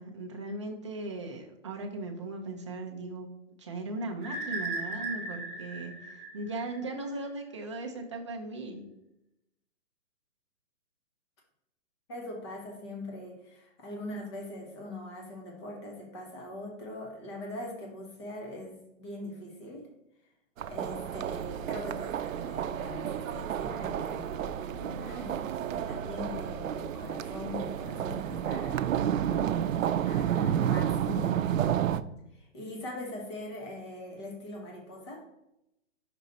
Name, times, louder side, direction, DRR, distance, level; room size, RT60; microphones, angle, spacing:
voice 1, 0.0-3.3 3.6-8.9, right 2 dB, 25° right, 1 dB, 0.6 m, -38 dB
sound 1, 4.2-7.1, right 3 dB, ahead, 0.8 m, -37 dB
voice 2, 12.1-19.9 20.7-28.9 30.0-31.3 32.3-35.3, left 1 dB, 20° left, 0 dB, 1.1 m, -41 dB
sound 2, 20.6-32.0, right 10 dB, 90° right, 0.5 m, -31 dB
5.5 x 5.0 x 4.0 m, 0.85 s
hypercardioid pair, 170°, 38 cm